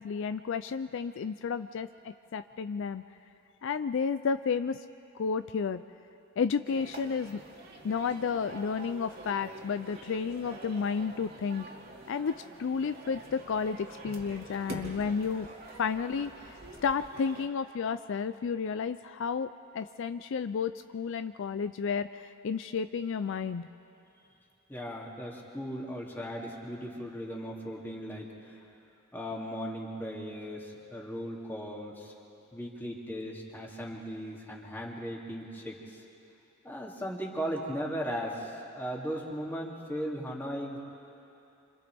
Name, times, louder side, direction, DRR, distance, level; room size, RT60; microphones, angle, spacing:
voice 1, 0.0-3.0 3.6-4.8 5.2-5.8 6.4-7.4 7.8-11.7 12.1-15.5 15.8-16.3 16.8-23.7, left 6 dB, 65° left, 11 dB, 0.4 m, -32 dB
sound 1, 6.6-17.5, right 2 dB, 50° right, 2.2 m, -46 dB
voice 2, 24.7-28.6 29.1-32.1 32.5-36.0 36.6-40.8, equal, 10° left, -3 dB, 2.6 m, -37 dB
28.5 x 26.5 x 3.5 m, 2.8 s
head